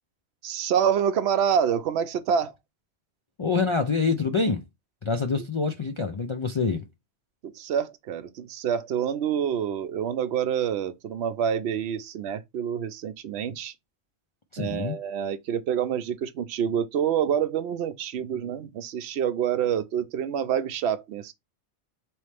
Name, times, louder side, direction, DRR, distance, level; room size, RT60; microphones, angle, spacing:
voice 1, 0.4-2.5 7.5-13.7 14.6-21.3, right 8 dB, 70° right, 0.9 m, -27 dB
voice 2, 3.4-4.6 5.0-6.9 14.5-15.0, left 4 dB, 55° left, 0.3 m, -26 dB
4.1 x 3.1 x 3.3 m
omnidirectional pair, 1.1 m